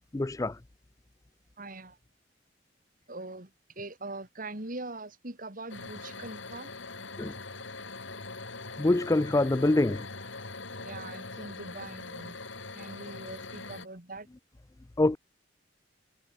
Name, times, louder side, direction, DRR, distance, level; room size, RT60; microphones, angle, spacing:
voice 1, 0.1-0.6 7.2-7.3 8.8-10.1 15.0-15.2, left 2 dB, 15° left, 0.4 m, -25 dB
voice 2, 1.6-2.0 3.1-3.5 3.7-6.7 10.8-12.4 12.7-14.3, right 2 dB, 45° right, 3.3 m, -42 dB
sound 1, 5.7-13.9, left 3 dB, 80° left, 7.5 m, -42 dB
head